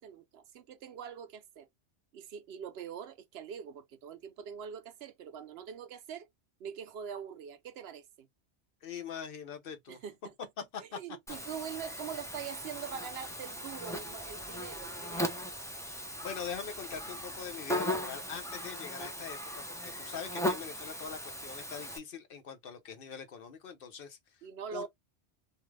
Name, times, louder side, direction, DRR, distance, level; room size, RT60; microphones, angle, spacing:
voice 1, 0.0-1.7 2.1-6.3 6.6-8.3 9.9-10.1 10.8-15.4 24.4-24.9, right 8 dB, 70° right, 0.8 m, -43 dB
voice 2, 8.8-10.0 10.7-11.0 15.9-24.4 24.7-24.9, left 7 dB, 60° left, 0.9 m, -43 dB
Buzz, 11.3-22.0, equal, 5° left, 0.3 m, -38 dB
2.6 x 2.4 x 3.1 m
omnidirectional pair, 1.1 m